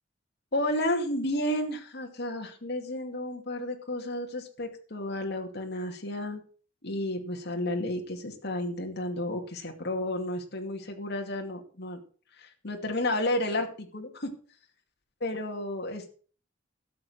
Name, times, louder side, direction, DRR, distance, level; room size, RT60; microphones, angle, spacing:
voice 1, 0.5-6.4 6.8-12.0 12.3-14.3 15.2-16.1, left 1 dB, 60° left, 3 dB, 2.4 m, -32 dB
12.5 x 7.8 x 6.6 m, 0.41 s
head